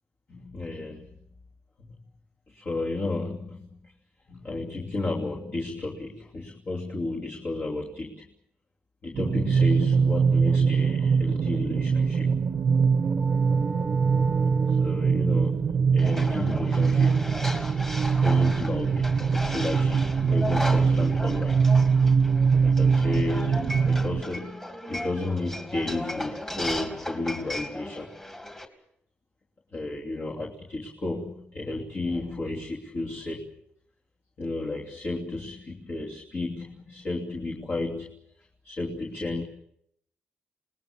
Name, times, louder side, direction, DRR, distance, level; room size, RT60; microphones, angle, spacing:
voice 1, 0.3-1.1 2.5-3.9 4.3-8.3 9.0-12.3 14.7-17.3 18.2-21.6 22.6-28.1 29.7-33.5 34.4-38.2 38.6-39.4, left 2 dB, 40° left, -1 dB, 3.0 m, -33 dB
sound 1, 9.1-24.2, right 5 dB, 50° right, 1.1 m, -23 dB
sound 2, 12.5-18.0, right 2 dB, 15° right, 1.4 m, -40 dB
sound 3, 16.0-28.6, left 1 dB, 15° left, 2.9 m, -36 dB
28.5 x 20.0 x 7.2 m, 0.72 s
wide cardioid pair, 160°, 4 cm